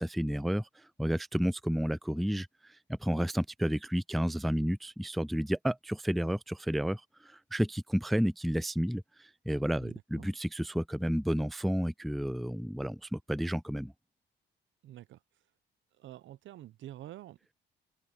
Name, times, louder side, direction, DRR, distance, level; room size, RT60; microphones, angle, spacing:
voice 1, 0.0-13.9, equal, ahead, 0.3 m, -31 dB
voice 2, 9.8-10.3 14.8-15.2 16.0-17.5, right 13 dB, 75° right, 0.7 m, -48 dB
open air
cardioid pair, 90°, 20 cm